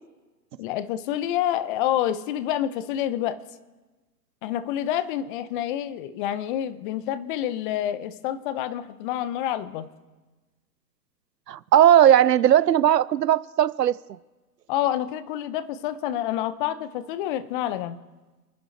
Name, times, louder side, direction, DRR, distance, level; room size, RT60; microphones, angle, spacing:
voice 1, 0.6-3.4 4.4-9.9 14.7-18.0, left 11 dB, 30° left, 14 dB, 0.9 m, -28 dB
voice 2, 11.5-14.0, right 11 dB, 75° right, 20 dB, 0.7 m, -18 dB
29.5 x 10.0 x 3.4 m, 1.2 s
figure-of-eight pair, 115°, 50 cm